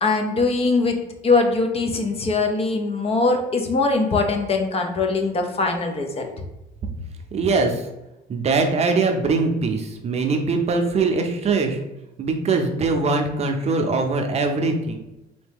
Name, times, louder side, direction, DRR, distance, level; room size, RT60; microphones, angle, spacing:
voice 1, 0.0-1.0 1.2-6.3, left 3 dB, 35° left, 4 dB, 0.7 m, -21 dB
voice 2, 7.3-7.8 8.3-11.8 12.2-15.0, right 3 dB, 40° right, 5 dB, 0.6 m, -22 dB
4.2 x 2.8 x 3.5 m, 0.93 s
cardioid pair, 110°, 17 cm